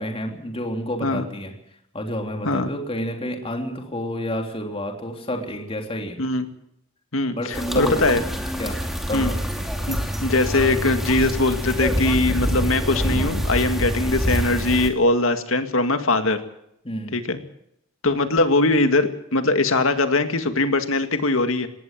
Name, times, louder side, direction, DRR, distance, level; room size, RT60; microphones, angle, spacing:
voice 1, 0.0-1.5 1.9-6.2 7.3-8.1 8.6-9.4 16.8-17.2, equal, 30° left, 3 dB, 3.4 m, -29 dB
voice 2, 7.1-8.2 9.1-9.3 9.9-16.4 17.1-17.4 18.0-21.7, left 2 dB, 75° left, 7 dB, 2.2 m, -21 dB
sound 1, 7.5-14.9, equal, ahead, 2.8 m, -26 dB
19.0 x 18.5 x 7.6 m, 0.76 s
head